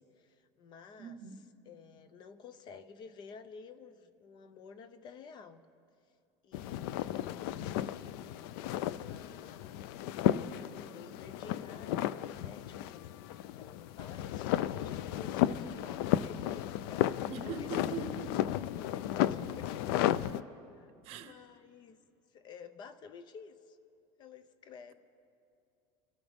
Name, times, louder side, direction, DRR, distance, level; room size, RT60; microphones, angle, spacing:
voice 1, 0.0-1.2 1.7-5.6 6.4-7.8 8.7-9.8 10.6-13.3 13.6-18.1 18.8-20.5 20.7-22.0 22.3-23.8 24.2-24.9, left 6 dB, 35° left, 13 dB, 0.6 m, -52 dB
voice 2, 1.0-1.4 17.3-18.6 21.0-21.4, right 5 dB, 55° right, 10 dB, 0.9 m, -41 dB
sound 1, 6.5-20.4, left 12 dB, 80° left, 0.4 m, -34 dB
25.0 x 13.0 x 3.5 m, 2.5 s
cardioid pair, 155°, 12 cm